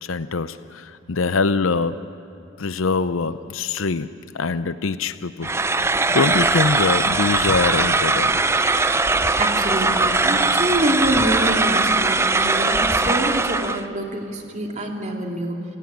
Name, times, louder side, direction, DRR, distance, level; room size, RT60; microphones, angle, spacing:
voice 1, 0.0-2.1 2.6-4.1 4.3-5.5 5.8-8.3, left 4 dB, 80° left, 13 dB, 0.7 m, -23 dB
sound 1, 5.4-13.9, right 3 dB, 15° right, 0.5 m, -20 dB
voice 2, 9.4-15.6, right 1 dB, 35° right, 1 dB, 2.6 m, -25 dB
28.5 x 16.5 x 9.7 m, 2.6 s
head